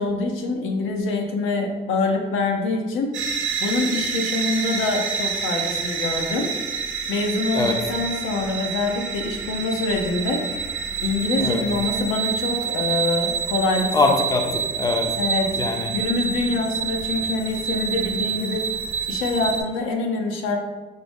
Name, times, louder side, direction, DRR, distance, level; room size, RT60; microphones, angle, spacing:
voice 1, 0.0-3.1 3.6-6.5 7.1-10.4 11.0-14.1 15.2-15.6 15.9-18.7 19.1-20.6, left 3 dB, 85° left, 2 dB, 0.6 m, -25 dB
sound 1, 3.1-19.6, right 6 dB, 80° right, 0.6 m, -28 dB
voice 2, 13.9-15.1 15.5-15.9, left 3 dB, 20° left, 3 dB, 0.5 m, -22 dB
5.0 x 2.0 x 3.4 m, 1.2 s
cardioid pair, 90°, 20 cm